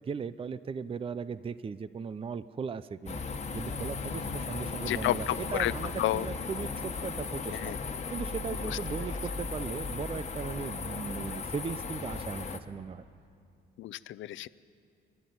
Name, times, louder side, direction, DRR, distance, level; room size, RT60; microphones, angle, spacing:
voice 1, 0.0-3.2 3.5-7.7 8.1-13.0, right 5 dB, 30° right, 15 dB, 0.5 m, -37 dB
sound 1, 3.1-12.6, left 4 dB, 35° left, 1.5 m, -36 dB
voice 2, 4.9-5.7 6.0-6.3 7.5-7.8 8.6-8.8 13.8-14.5, left 14 dB, 75° left, 17 dB, 0.5 m, -31 dB
21.5 x 13.0 x 9.4 m, 2.5 s
cardioid pair, 90°, 20 cm